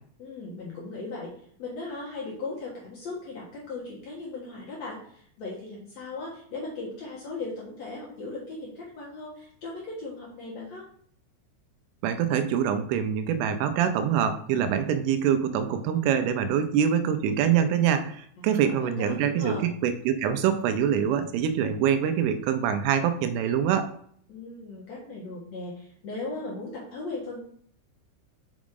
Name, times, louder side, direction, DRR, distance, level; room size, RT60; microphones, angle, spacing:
voice 1, 0.2-1.3 1.6-10.8 18.4-19.6 24.3-27.4, left 3 dB, 70° left, -5 dB, 1.6 m, -38 dB
voice 2, 12.0-23.9, right 8 dB, 90° right, 9 dB, 3.2 m, -25 dB
6.2 x 6.0 x 3.8 m, 0.62 s
omnidirectional pair, 5.5 m